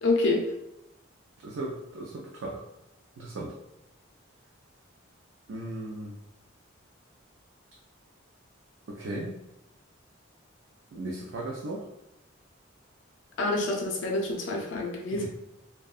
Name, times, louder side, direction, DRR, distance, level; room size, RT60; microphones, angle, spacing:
voice 1, 0.0-0.5 13.4-15.3, left 2 dB, 60° left, 1 dB, 0.4 m, -27 dB
voice 2, 1.4-2.6 3.2-3.5 5.5-6.2 8.9-9.4 10.9-11.8 15.1-15.3, right 2 dB, 65° right, -3 dB, 0.4 m, -36 dB
2.6 x 2.2 x 2.3 m, 0.87 s
head